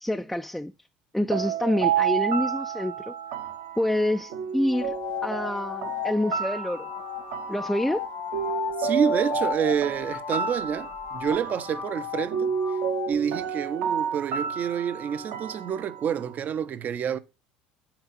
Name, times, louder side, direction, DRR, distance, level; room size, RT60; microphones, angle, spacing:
voice 1, 0.0-0.7 1.1-3.1 3.8-4.9 5.2-6.9 7.5-8.1, left 1 dB, 5° left, 0.4 m, -27 dB
sound 1, 1.3-16.3, right 7 dB, 70° right, 0.9 m, -31 dB
sound 2, 4.7-13.1, left 10 dB, 65° left, 1.6 m, -35 dB
voice 2, 8.8-12.8 13.1-17.2, right 8 dB, 45° right, 0.6 m, -28 dB
6.0 x 4.0 x 5.2 m
hypercardioid pair, 75°, 4 cm